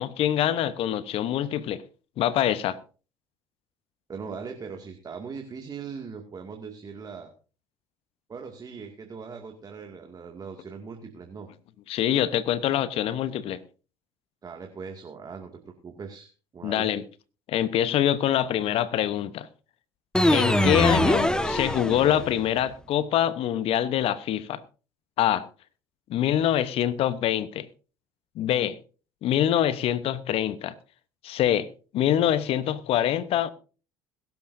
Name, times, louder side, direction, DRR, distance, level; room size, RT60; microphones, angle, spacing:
voice 1, 0.0-1.8 2.2-2.8 11.9-13.6 16.6-17.0 17.5-19.5 20.3-24.6 25.2-25.5 26.1-27.7 28.4-28.8 29.2-30.7 31.2-31.7 31.9-33.5, left 11 dB, 55° left, 1.0 m, -25 dB
voice 2, 4.1-7.3 8.3-11.5 14.4-16.9, right 5 dB, 35° right, 2.2 m, -40 dB
sound 1, 20.1-22.5, left 1 dB, 5° left, 1.5 m, -23 dB
21.5 x 12.0 x 2.7 m
hypercardioid pair, 60°, 12 cm